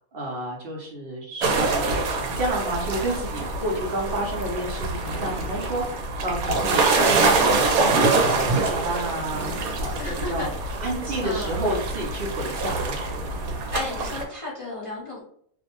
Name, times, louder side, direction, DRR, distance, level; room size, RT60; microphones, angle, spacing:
voice 1, 0.1-7.3 7.7-10.0 10.3-10.5 10.8-13.0, right 1 dB, 60° right, -1 dB, 0.6 m, -30 dB
sound 1, 1.4-14.3, right 3 dB, 80° right, 1.0 m, -25 dB
voice 2, 6.9-7.4 10.0-10.5 11.2-11.6 13.7-15.2, left 2 dB, 35° left, -8 dB, 0.5 m, -33 dB
2.6 x 2.0 x 2.8 m, 0.64 s
omnidirectional pair, 1.5 m